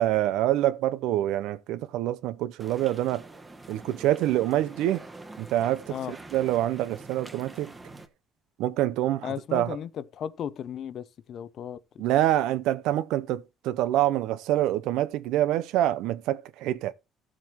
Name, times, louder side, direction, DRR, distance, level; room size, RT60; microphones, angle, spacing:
voice 1, 0.0-3.3 3.7-5.0 5.4-7.7 8.6-9.8 12.0-16.9, right 13 dB, 80° right, 0.6 m, -26 dB
sound 1, 2.6-8.1, right 2 dB, 15° right, 1.2 m, -45 dB
voice 2, 9.2-12.0, left 9 dB, 50° left, 0.7 m, -35 dB
14.5 x 7.5 x 3.0 m
cardioid pair, 140°, 0 cm